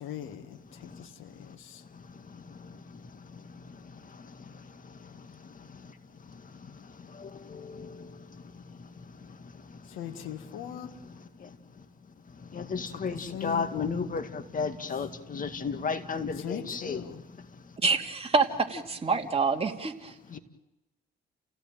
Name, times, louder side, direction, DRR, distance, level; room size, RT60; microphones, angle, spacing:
voice 1, 0.0-1.8 9.9-10.9 12.9-13.7 16.4-17.2, left 10 dB, 85° left, 7 dB, 1.9 m, -40 dB
voice 2, 7.2-7.9 12.5-17.0 20.3-20.4, left 5 dB, 40° left, 9 dB, 2.1 m, -33 dB
voice 3, 17.8-20.1, right 4 dB, 30° right, 3 dB, 2.7 m, -27 dB
29.5 x 17.0 x 9.1 m, 0.98 s
cardioid pair, 90°, 20 cm